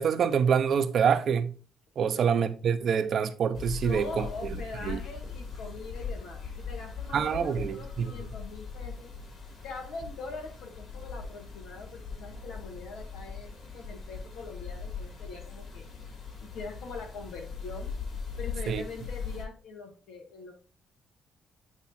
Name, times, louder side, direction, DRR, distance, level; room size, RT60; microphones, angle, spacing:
voice 1, 0.0-1.5 2.0-4.3 4.9-5.0 7.1-8.1 18.7-18.8, right 7 dB, 60° right, 0.8 m, -26 dB
voice 2, 2.0-2.5 3.7-9.1 9.6-15.9 16.4-17.9 18.4-20.5, left 4 dB, 90° left, 2.1 m, -43 dB
sound 1, 3.5-19.4, left 5 dB, 55° left, 4.0 m, -40 dB
8.6 x 3.6 x 4.3 m
cardioid pair, 90°, 0 cm